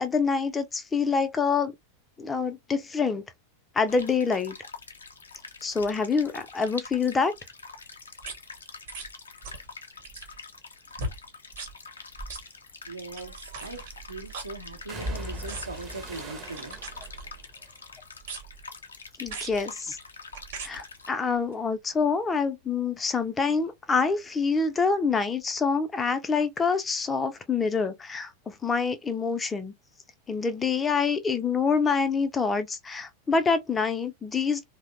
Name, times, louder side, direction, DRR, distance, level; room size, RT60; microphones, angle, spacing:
voice 1, 0.0-1.7 2.2-3.2 3.7-4.6 5.6-7.3 19.2-20.0 20.6-29.7 30.3-34.6, left 5 dB, 15° left, 0.4 m, -26 dB
sound 1, 3.9-21.1, left 4 dB, 75° left, 0.5 m, -45 dB
sound 2, 8.2-8.4 8.9-9.1 9.4-9.7 10.0-10.4 11.0-11.2 11.5-11.7 12.3-12.4 13.1-15.0 15.5-15.9 16.6-17.5 18.2-18.7 19.3-19.6 20.3-20.7 21.5-21.6, right 3 dB, 55° right, 0.9 m, -40 dB
sound 3, 12.1-12.4 13.6-14.1 14.9-19.1 19.4-20.1 20.4-23.7 24.0-25.1 25.4-25.5, right 1 dB, 25° right, 0.6 m, -43 dB
voice 2, 12.8-16.8, right 3 dB, 80° right, 0.7 m, -40 dB
2.7 x 2.0 x 2.4 m
figure-of-eight pair, 90°, 0 cm